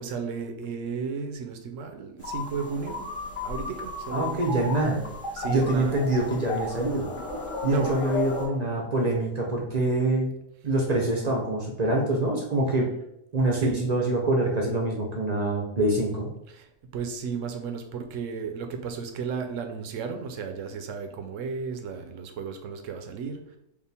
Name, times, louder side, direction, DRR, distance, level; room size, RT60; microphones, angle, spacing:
voice 1, 0.0-3.1 3.4-4.4 5.3-6.1 7.6-8.1 8.8-9.0 13.6-13.9 16.5-23.5, right 5 dB, 70° right, 6 dB, 0.9 m, -33 dB
sound 1, 2.2-8.5, left 3 dB, 40° left, 1.5 m, -34 dB
voice 2, 4.1-5.0 5.5-7.1 7.6-10.3 10.6-12.9 13.3-16.3, right 2 dB, 45° right, 0 dB, 0.6 m, -25 dB
4.9 x 2.4 x 3.4 m, 0.80 s
omnidirectional pair, 1.5 m